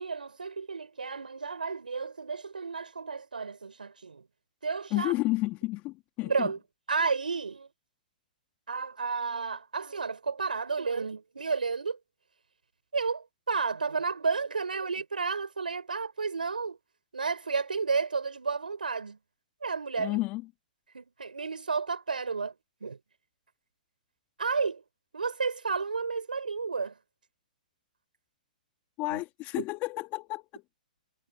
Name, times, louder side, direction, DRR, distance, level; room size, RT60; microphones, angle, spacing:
voice 1, 0.0-4.2 4.6-5.1 6.3-6.6 6.9-7.7 8.7-12.0 12.9-16.8 17.1-19.2 19.6-20.2 20.9-22.5 22.8-23.0 24.4-24.8 25.1-26.9 29.1-29.2, right 4 dB, 90° right, 6.4 m, -32 dB
voice 2, 4.9-6.5 20.0-20.4 29.0-30.6, left 20 dB, 35° left, 3.4 m, -31 dB
hypercardioid pair, 120°, 5 cm